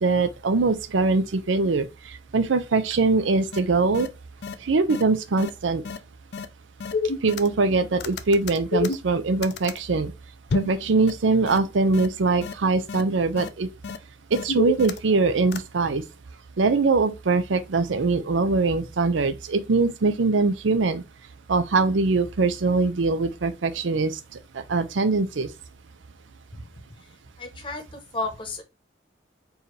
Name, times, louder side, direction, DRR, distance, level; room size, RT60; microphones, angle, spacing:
voice 1, 0.0-1.9 2.3-4.1 4.6-5.8 7.2-10.1 10.5-13.7 14.3-16.0 16.6-21.0 21.5-24.1 24.5-25.5, right 3 dB, 85° right, 0.6 m, -22 dB
sound 1, 3.5-3.6 3.9-4.1 4.4-4.5 4.9-5.0 5.4-5.5 5.8-6.0 6.3-6.4 6.8-7.7 8.0-9.8 10.5-10.8 11.1-11.2 11.5-11.6 11.9-12.1 12.4-12.5 12.9-13.0 13.4-13.5 13.8-14.0 14.3-15.2 15.5-15.6, left 5 dB, 60° left, 0.5 m, -29 dB
voice 2, 27.4-27.8 28.1-28.6, left 3 dB, 25° left, 0.9 m, -31 dB
4.6 x 2.8 x 3.1 m
head